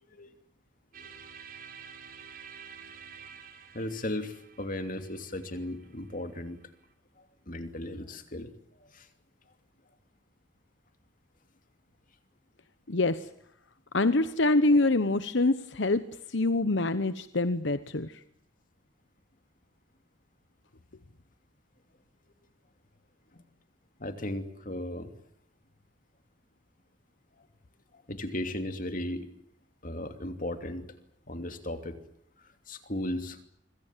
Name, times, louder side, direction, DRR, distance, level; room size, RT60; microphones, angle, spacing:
sound 1, 0.9-6.9, right 7 dB, 50° right, 5.1 m, -50 dB
voice 1, 3.7-6.6 7.5-8.5 8.8-9.1 23.3-23.4 24.0-25.1 28.1-29.3 29.8-30.9 31.3-32.0 32.7-33.4, left 1 dB, 45° left, 8 dB, 2.9 m, -36 dB
voice 2, 12.9-13.2 13.9-16.0 16.3-18.1, left 2 dB, 65° left, 12 dB, 1.0 m, -25 dB
25.5 x 25.5 x 7.5 m, 0.72 s
head